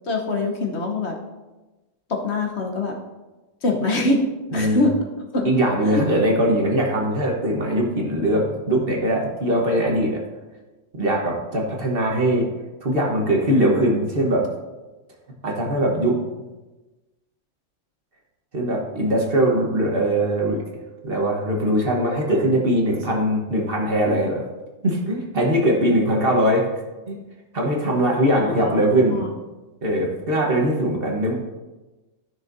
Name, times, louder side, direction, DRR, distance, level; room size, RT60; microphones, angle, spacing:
voice 1, 0.1-1.2 2.1-3.0 3.6-4.2 4.5-4.9 5.3-5.5 5.9-6.0 28.4-29.3, left 2 dB, 60° left, 1 dB, 1.3 m, -24 dB
voice 2, 4.5-4.9 5.4-10.2 10.9-12.5 12.8-14.5 15.4-16.2 18.5-20.6 21.0-24.4 24.8-26.6 27.1-27.2 27.5-29.2 29.8-31.3, right 1 dB, 45° right, -1 dB, 1.4 m, -21 dB
13.0 x 6.2 x 2.6 m, 1.1 s
omnidirectional pair, 1.3 m